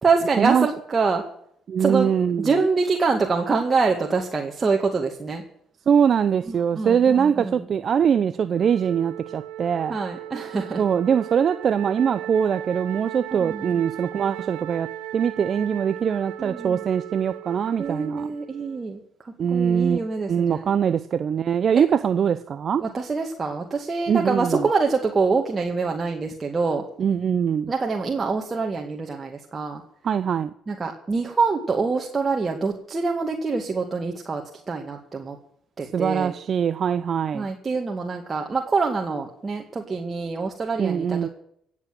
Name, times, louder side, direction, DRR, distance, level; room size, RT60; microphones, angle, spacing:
voice 1, 0.0-1.2 1.8-2.1 2.4-5.4 6.5-7.7 9.9-10.8 13.4-13.7 16.4-16.8 17.8-20.7 21.7-21.8 22.8-26.8 27.7-29.8 30.7-35.4 35.8-36.3 37.3-41.3, right 4 dB, 30° right, 2.3 m, -25 dB
voice 2, 1.7-2.5 5.9-10.0 10.8-18.3 19.4-20.0 20.3-22.8 24.1-24.6 27.0-27.7 30.0-30.5 35.9-37.5 40.8-41.3, right 7 dB, 50° right, 0.7 m, -22 dB
Wind instrument woodwind instrument, 8.5-18.9, right 13 dB, 80° right, 0.9 m, -37 dB
16.5 x 8.6 x 7.7 m
hypercardioid pair, 60°, 0 cm